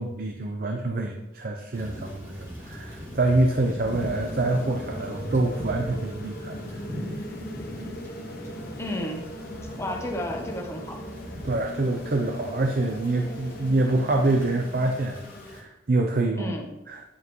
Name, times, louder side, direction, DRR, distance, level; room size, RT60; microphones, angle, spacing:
voice 1, 0.0-6.6 11.4-15.2 15.5-16.5 16.9-17.0, right 2 dB, 45° right, 3 dB, 0.5 m, -26 dB
Thunder / Rain, 1.7-15.6, equal, 15° right, 2.0 m, -40 dB
sound 1, 3.9-15.6, equal, 50° left, 0.9 m, -40 dB
voice 2, 8.8-9.3 9.8-11.0 16.3-16.7, left 1 dB, 15° left, 2 dB, 0.8 m, -32 dB
9.7 x 5.6 x 3.0 m, 0.96 s
head